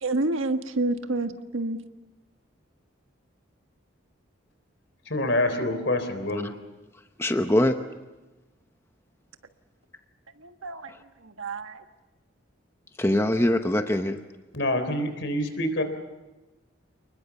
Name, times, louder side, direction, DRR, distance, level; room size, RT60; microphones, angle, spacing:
voice 1, 0.0-1.8 10.4-10.9 11.2-11.8, right 2 dB, 90° right, 7 dB, 1.5 m, -28 dB
voice 2, 5.1-6.5 14.5-15.8, left 1 dB, 65° left, 8 dB, 3.7 m, -26 dB
voice 3, 7.2-7.8 10.9-11.0 13.0-14.2, left 1 dB, 10° left, 7 dB, 0.8 m, -23 dB
29.0 x 20.5 x 7.1 m, 1.1 s
head